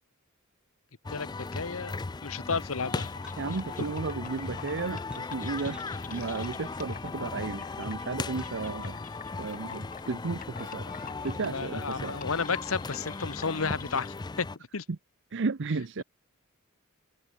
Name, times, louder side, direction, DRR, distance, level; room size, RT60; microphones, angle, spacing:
sound 1, 1.0-14.6, left 3 dB, 20° left, 0.4 m, -37 dB
voice 1, 1.1-3.1 6.2-6.3 11.4-14.5 14.7-14.8, left 5 dB, 70° left, 1.1 m, -32 dB
sound 2, 2.9-14.1, left 6 dB, 40° left, 4.3 m, -47 dB
sound 3, 3.2-3.5 4.9-5.2 5.5-5.9 7.0-7.2 8.4-8.5, right 1 dB, 5° right, 7.2 m, -53 dB
voice 2, 3.4-5.8 6.1-9.0 9.4-10.9 11.2-12.2 14.9-15.0 15.3-16.0, right 4 dB, 60° right, 0.7 m, -33 dB
head